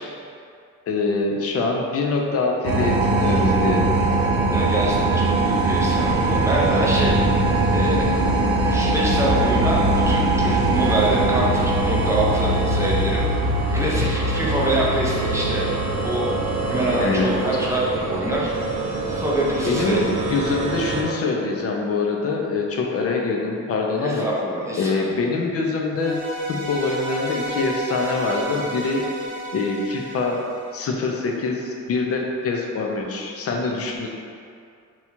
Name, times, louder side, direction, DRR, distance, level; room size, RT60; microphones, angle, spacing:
voice 1, 0.9-3.9 13.8-14.1 17.0-17.3 19.7-24.2 24.8-26.2 26.5-29.0 29.5-30.4 30.7-34.1, left 3 dB, 50° left, 0 dB, 0.5 m, -24 dB
sound 1, 2.6-21.0, right 2 dB, 80° right, 0.6 m, -21 dB
voice 2, 4.5-7.2 7.7-8.1 8.6-13.3 13.7-15.6 16.0-16.3 16.7-18.5 19.1-20.0 24.0-25.1, right 1 dB, 10° right, -5 dB, 0.4 m, -25 dB
sound 2, 25.9-31.2, right 1 dB, 10° left, 0.8 m, -32 dB
2.8 x 2.3 x 4.2 m, 2.3 s
wide cardioid pair, 165°, 30 cm